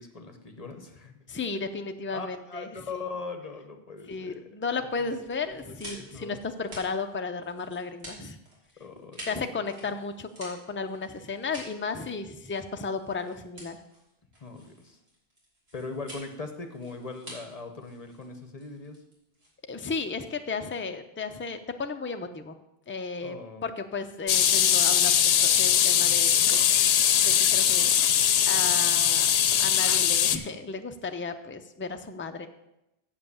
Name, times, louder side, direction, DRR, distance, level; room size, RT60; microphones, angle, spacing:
voice 1, 0.0-1.1 2.1-4.5 5.6-6.4 8.8-9.3 14.4-15.0 15.7-19.0 23.2-23.6, left 3 dB, 40° left, 6 dB, 1.0 m, -40 dB
voice 2, 1.3-3.0 4.1-8.4 9.3-13.8 19.7-22.5 22.9-26.6 27.2-32.5, left 4 dB, 15° left, 7 dB, 0.4 m, -34 dB
sound 1, 5.2-19.9, equal, 80° right, 3.2 m, -48 dB
sound 2, 24.3-30.4, left 9 dB, 80° left, 0.8 m, -21 dB
7.6 x 7.2 x 7.0 m, 0.88 s
omnidirectional pair, 1.0 m